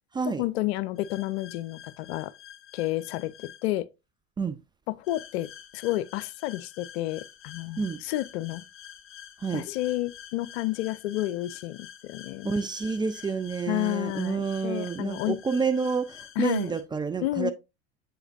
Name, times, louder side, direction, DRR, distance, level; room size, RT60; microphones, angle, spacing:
voice 1, 0.4-2.3 2.7-3.9 4.9-8.6 9.5-12.5 13.7-15.4 16.4-16.7 17.2-17.5, left 17 dB, 65° left, 0.5 m, -30 dB
sound 1, 1.0-3.6 5.0-16.8, left 10 dB, 35° left, 1.3 m, -48 dB
voice 2, 12.4-17.5, right 5 dB, 15° right, 0.4 m, -29 dB
7.6 x 4.9 x 2.5 m
hypercardioid pair, 75°, 35 cm